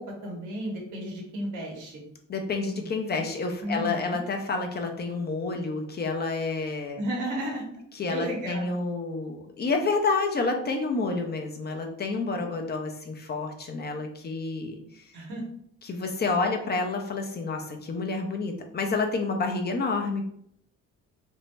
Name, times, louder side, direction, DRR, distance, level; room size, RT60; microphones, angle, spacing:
voice 1, 0.0-2.0 3.6-4.2 6.9-7.7 8.1-8.8 15.1-15.4, equal, 90° right, -1 dB, 1.0 m, -33 dB
voice 2, 2.3-7.0 7.9-15.0 15.8-20.3, left 3 dB, 35° left, 3 dB, 0.5 m, -29 dB
2.6 x 2.1 x 3.2 m, 0.69 s
cardioid pair, 90°, 30 cm